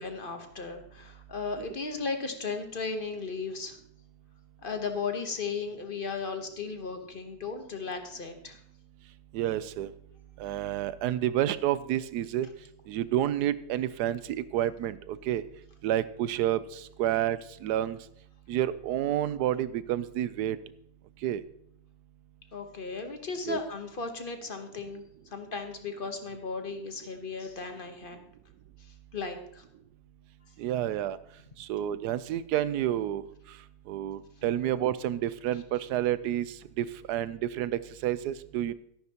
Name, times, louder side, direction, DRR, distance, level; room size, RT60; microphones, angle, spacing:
voice 1, 0.0-3.8 4.6-8.6 22.5-25.0 25.3-28.2 29.1-29.6, left 4 dB, 40° left, 6 dB, 1.0 m, -36 dB
voice 2, 9.3-9.9 10.4-12.5 12.9-15.4 15.8-18.0 18.5-20.6 21.2-21.4 23.5-23.6 30.6-31.2 31.6-33.2 33.9-38.7, right 12 dB, 85° right, 16 dB, 1.1 m, -29 dB
13.0 x 11.0 x 2.9 m, 0.71 s
omnidirectional pair, 1.7 m